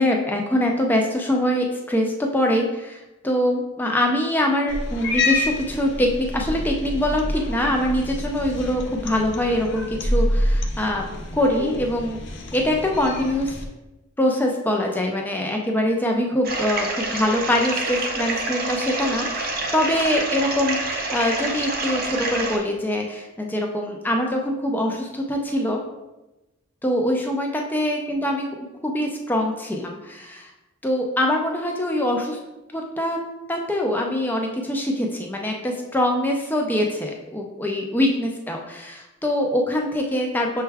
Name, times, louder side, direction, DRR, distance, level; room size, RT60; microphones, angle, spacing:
voice 1, 0.0-11.0 11.3-12.2 12.5-13.6 14.2-25.8 26.8-28.5 28.8-30.5 30.8-32.4 32.7-33.2 33.5-40.6, left 1 dB, 10° left, 1 dB, 0.4 m, -23 dB
Cat, 4.7-13.7, left 1 dB, 55° left, 0.6 m, -27 dB
sound 1, 16.4-22.6, right 2 dB, 45° right, 0.5 m, -27 dB
6.5 x 2.2 x 3.4 m, 1.0 s
head